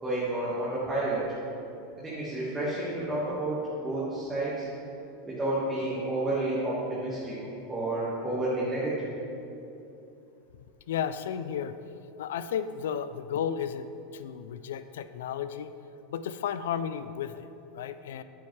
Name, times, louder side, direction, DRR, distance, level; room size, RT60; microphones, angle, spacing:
voice 1, 0.0-1.2 2.0-4.7 5.2-7.3 7.7-9.1, right 1 dB, 10° right, -9 dB, 1.6 m, -30 dB
voice 2, 10.9-11.8 12.2-15.7 16.1-17.5 17.7-18.2, left 8 dB, 85° left, 12 dB, 0.4 m, -33 dB
8.7 x 8.7 x 3.2 m, 2.8 s
supercardioid pair, 145°, 0 cm